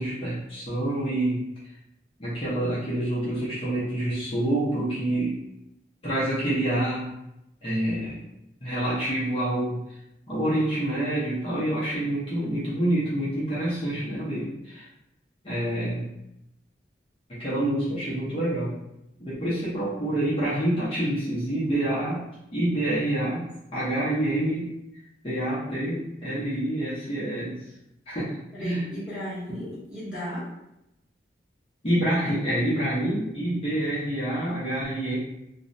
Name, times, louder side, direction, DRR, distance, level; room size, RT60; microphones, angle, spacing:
voice 1, 0.0-1.4 2.2-5.4 6.0-7.1 7.6-8.2 8.6-9.8 10.3-14.9 15.4-16.1 17.3-18.7 19.2-22.2 22.5-24.7 25.2-27.6 28.1-28.9 31.8-35.2, right 1 dB, 30° left, -10 dB, 0.7 m, -27 dB
voice 2, 28.5-30.5 33.9-34.0, equal, 5° right, -11 dB, 1.0 m, -35 dB
2.4 x 2.1 x 2.5 m, 0.86 s
head